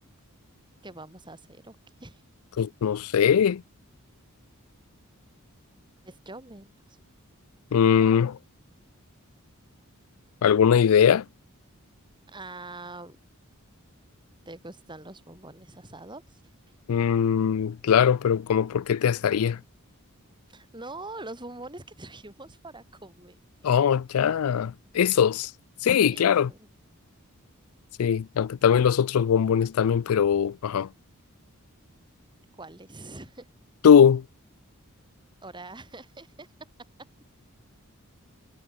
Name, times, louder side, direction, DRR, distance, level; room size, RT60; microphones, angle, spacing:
voice 1, 0.8-2.2 6.0-6.7 12.3-13.2 14.5-16.7 20.5-23.4 26.1-26.7 32.5-33.5 35.4-36.5, right 2 dB, 20° right, 5.6 m, -44 dB
voice 2, 2.6-3.6 7.7-8.4 10.4-11.2 16.9-19.6 23.6-25.5 25.8-26.5 28.0-30.9 33.8-34.2, left 8 dB, 80° left, 0.4 m, -21 dB
head